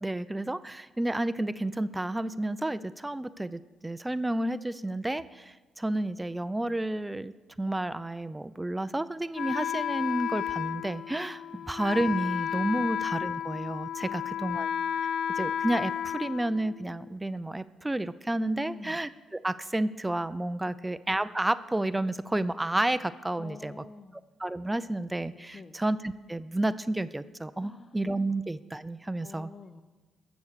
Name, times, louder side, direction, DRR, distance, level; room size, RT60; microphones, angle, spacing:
voice 1, 0.0-7.3 7.6-14.7 15.4-23.9 24.4-29.5, right 1 dB, 10° right, 15 dB, 0.4 m, -31 dB
Wind instrument woodwind instrument, 9.3-17.1, left 9 dB, 65° left, 0.3 m, -32 dB
voice 2, 14.0-14.7 18.6-19.0 20.6-20.9 23.4-24.2 25.5-25.8 27.6-28.0 28.3-28.4 29.2-29.8, left 4 dB, 35° left, 8 dB, 0.6 m, -47 dB
13.5 x 7.0 x 6.7 m, 1.2 s
cardioid pair, 90°, 0 cm